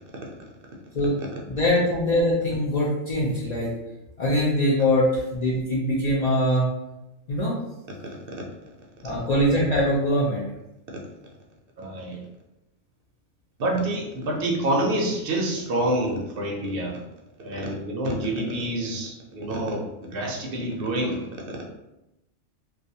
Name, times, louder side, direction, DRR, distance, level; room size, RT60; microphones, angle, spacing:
voice 1, 1.5-3.7 4.2-6.7 7.3-7.6 9.0-10.5, left 1 dB, 55° left, -6 dB, 0.4 m, -22 dB
voice 2, 11.8-12.2 13.6-17.0 17.4-21.3, right 1 dB, 60° right, -1 dB, 0.6 m, -27 dB
2.3 x 2.2 x 2.7 m, 0.92 s
omnidirectional pair, 1.3 m